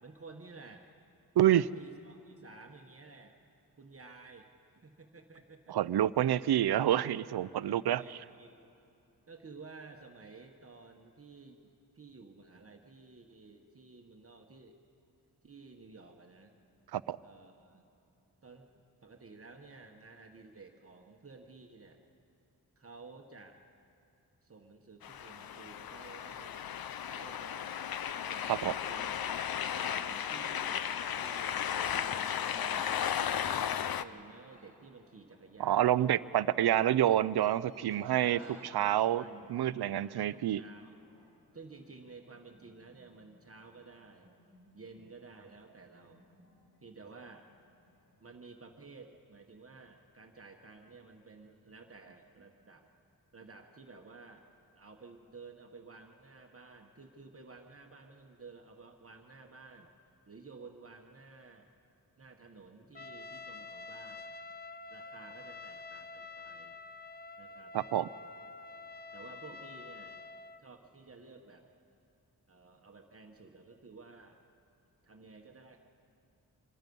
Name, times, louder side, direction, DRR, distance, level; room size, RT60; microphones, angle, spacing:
voice 1, 0.0-0.9 1.4-3.4 3.8-4.5 4.8-5.8 7.7-8.5 9.3-14.8 15.4-16.5 17.2-17.9 18.4-18.7 19.0-22.0 22.8-23.6 24.4-26.7 27.1-28.0 28.2-29.1 29.7-33.2 33.5-36.4 38.0-41.0 41.5-44.3 44.7-46.2 46.8-47.5 48.2-52.9 53.3-54.5 54.7-59.9 60.3-61.7 62.2-64.4 64.9-66.8 67.4-67.8 69.1-70.2 70.6-71.7 72.5-74.4 75.0-75.8, right 4 dB, 35° right, 2 dB, 1.3 m, -53 dB
voice 2, 5.7-8.0 16.9-17.2 28.5-28.7 35.6-38.4 38.7-39.2 39.5-40.6 67.7-68.1, right 12 dB, 85° right, 17 dB, 0.5 m, -27 dB
sound 1, 25.0-34.0, left 9 dB, 70° left, 0.6 m, -35 dB
sound 2, 33.5-48.2, equal, 45° left, 6.9 m, -64 dB
Trumpet, 63.0-70.6, left 3 dB, 25° left, 0.5 m, -47 dB
25.5 x 22.5 x 5.4 m, 2.7 s
wide cardioid pair, 140°, 38 cm